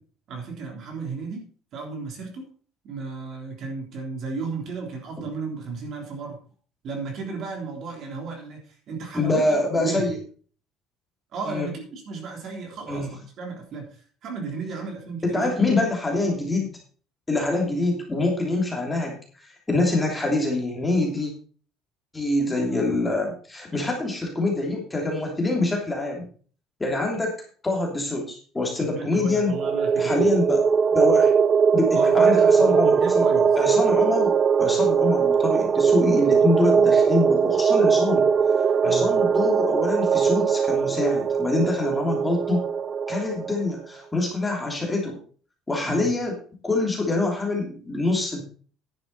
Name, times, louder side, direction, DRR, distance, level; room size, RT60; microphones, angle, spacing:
voice 1, 0.3-1.4 1.7-2.4 2.8-6.4 6.8-9.4 9.7-10.1 11.3-13.9 14.2-15.9 22.6-23.0 28.9-30.3 31.9-33.5 38.8-39.1 45.8-46.1, right 4 dB, 45° right, 2 dB, 3.5 m, -34 dB
voice 2, 9.1-10.2 11.4-11.7 12.9-13.1 15.2-16.7 17.3-19.2 19.7-21.3 22.1-26.3 26.8-27.4 27.6-29.6 30.0-30.6 30.9-31.3 31.7-38.3 38.8-42.6 43.1-45.2 45.7-46.4 46.6-48.4, left 2 dB, 10° left, 0 dB, 3.0 m, -25 dB
sound 1, 29.3-43.7, right 6 dB, 25° right, 0.4 m, -20 dB
10.5 x 9.7 x 4.1 m, 0.42 s
cardioid pair, 155°, 0 cm